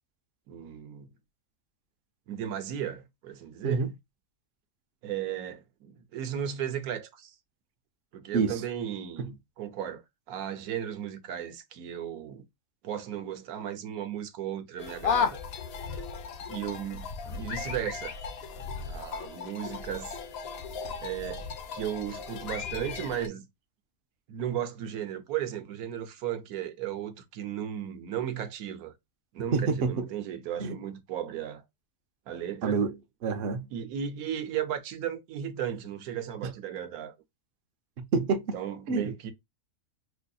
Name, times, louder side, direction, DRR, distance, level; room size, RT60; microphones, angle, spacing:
voice 1, 0.5-1.1 2.3-3.9 5.0-7.3 8.1-10.0 10.3-12.5 12.8-15.4 16.5-18.2 18.9-20.1 21.0-21.4 21.7-23.5 24.3-28.9 29.3-31.6 32.3-32.8 33.7-37.2 38.5-39.3, right 10 dB, 80° right, 1.1 m, -35 dB
sound 1, 14.8-23.3, left 6 dB, 80° left, 0.5 m, -35 dB
voice 2, 29.5-30.0 30.6-30.8 32.6-32.9 33.2-33.7 36.4-36.5 38.0-38.6 38.9-39.1, right 5 dB, 65° right, 0.6 m, -27 dB
4.8 x 2.6 x 2.2 m
omnidirectional pair, 1.6 m